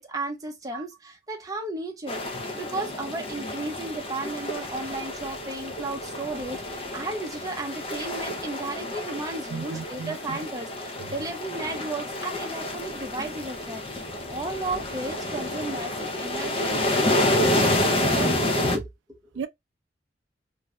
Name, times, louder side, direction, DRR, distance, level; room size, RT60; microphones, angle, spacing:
voice 1, 0.0-2.2 2.5-13.8 14.3-18.8 19.1-19.2, right 2 dB, 20° right, 0.6 m, -34 dB
sound 1, 2.1-18.8, left 1 dB, 30° left, 0.5 m, -29 dB
voice 2, 9.5-10.4 19.4-19.5, right 6 dB, 80° right, 0.3 m, -35 dB
2.5 x 2.3 x 2.9 m
head